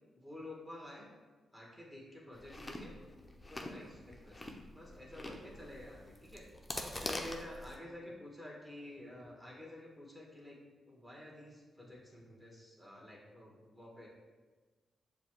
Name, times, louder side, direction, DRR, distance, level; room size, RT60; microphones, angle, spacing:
voice 1, 0.1-1.1 1.5-3.0 3.5-6.5 7.0-10.6 10.9-14.1, left 1 dB, 10° right, -3 dB, 1.3 m, -50 dB
Chewing mastication, 2.3-7.8, left 1 dB, 25° left, 0.6 m, -45 dB
6.7 x 2.2 x 3.0 m, 1.3 s
supercardioid pair, 45°, 0 cm